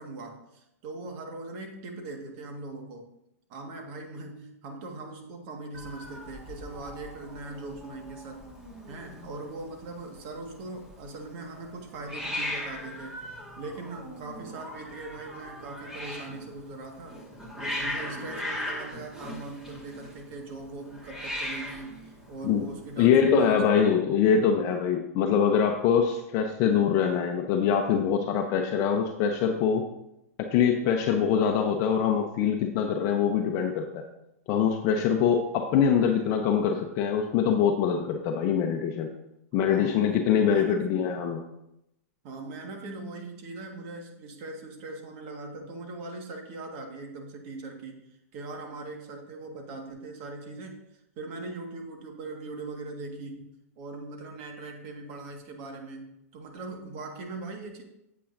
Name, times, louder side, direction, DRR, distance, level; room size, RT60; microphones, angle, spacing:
voice 1, 0.0-3.1 3.5-8.5 8.9-13.2 13.6-17.2 17.6-23.6 39.7-40.1 40.4-41.0 42.2-48.0 48.3-50.8 51.2-57.8, right 3 dB, 45° right, 3 dB, 1.7 m, -40 dB
Hiss, 5.7-23.1, left 1 dB, 5° right, 1.7 m, -39 dB
voice 2, 23.0-29.8 30.4-34.1 34.5-39.1 39.5-41.4, left 7 dB, 40° left, 4 dB, 0.7 m, -24 dB
8.4 x 8.2 x 2.6 m, 0.84 s
hypercardioid pair, 115°, 8 cm